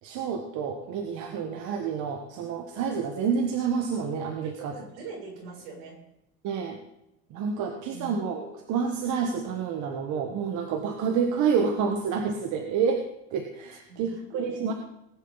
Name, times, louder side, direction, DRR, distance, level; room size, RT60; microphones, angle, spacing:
voice 1, 0.0-4.7 6.4-6.8 7.3-13.0 13.3-14.7, right 6 dB, 60° right, 4 dB, 1.5 m, -28 dB
voice 2, 4.4-6.0 7.9-8.1 13.9-14.8, right 3 dB, 80° right, -2 dB, 7.0 m, -42 dB
19.5 x 10.5 x 4.1 m, 0.83 s
supercardioid pair, 120°, 34 cm